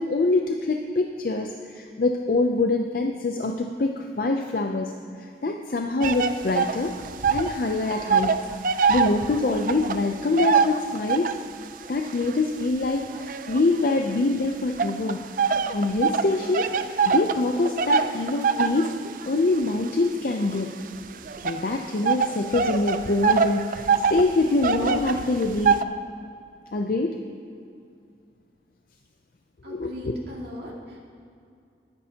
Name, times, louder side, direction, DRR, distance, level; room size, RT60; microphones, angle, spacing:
voice 1, 0.0-4.9 5.2-6.9 7.3-8.4 8.9-11.3 11.9-15.2 15.7-18.9 19.2-20.7 21.4-23.8 24.1-25.8 26.7-27.2 29.7-30.1, left 2 dB, 50° left, 4 dB, 0.5 m, -25 dB
sound 1, 6.0-7.6 7.8-11.5 12.1-14.2 14.8-25.8, right 5 dB, 50° right, 0.4 m, -24 dB
voice 2, 29.6-31.0, left 1 dB, 65° right, -5 dB, 2.3 m, -38 dB
19.5 x 10.0 x 2.8 m, 2.4 s
head